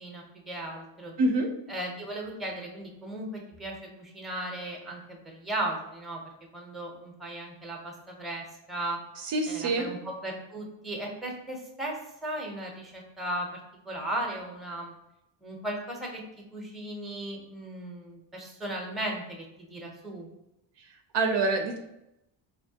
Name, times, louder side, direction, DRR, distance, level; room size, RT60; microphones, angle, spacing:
voice 1, 0.0-1.1 1.7-6.2 6.5-9.0 9.5-13.6 13.9-14.9 15.4-20.3, right 1 dB, ahead, 0 dB, 0.7 m, -36 dB
voice 2, 1.2-1.5 9.2-9.9 21.1-21.8, right 2 dB, 55° right, 4 dB, 0.6 m, -26 dB
4.3 x 2.8 x 2.7 m, 0.87 s
cardioid pair, 105°, 49 cm